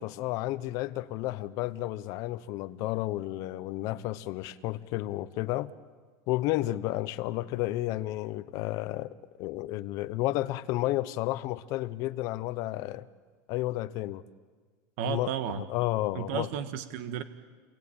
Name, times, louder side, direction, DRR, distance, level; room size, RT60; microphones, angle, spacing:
voice 1, 0.0-5.7 6.3-13.1 13.5-14.2 15.0-16.5, left 16 dB, 45° left, 14 dB, 0.9 m, -32 dB
voice 2, 15.0-15.6 16.1-17.2, right 9 dB, 60° right, 10 dB, 1.6 m, -33 dB
30.0 x 21.5 x 8.9 m, 1.5 s
supercardioid pair, 165°, 8 cm